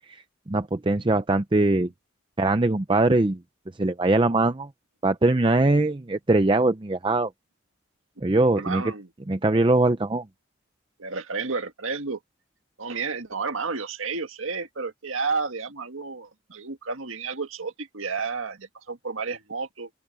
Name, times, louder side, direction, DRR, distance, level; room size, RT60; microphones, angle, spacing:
voice 1, 0.5-1.9 2.4-3.4 3.8-4.7 5.0-7.3 8.2-8.8 9.3-10.3, right 2 dB, 25° right, 0.5 m, -21 dB
voice 2, 8.6-9.1 11.0-12.2 12.8-19.9, right 4 dB, 75° right, 1.8 m, -31 dB
open air
head